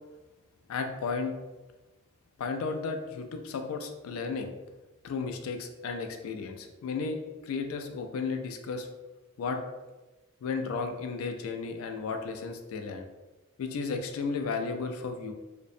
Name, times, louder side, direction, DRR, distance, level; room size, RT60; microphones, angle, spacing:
voice 1, 0.7-1.3 2.4-4.5 5.0-7.2 7.4-8.9 9.4-9.6 10.4-13.1 13.6-15.3, left 4 dB, 75° left, 5 dB, 0.3 m, -33 dB
2.5 x 2.0 x 2.5 m, 1.1 s
head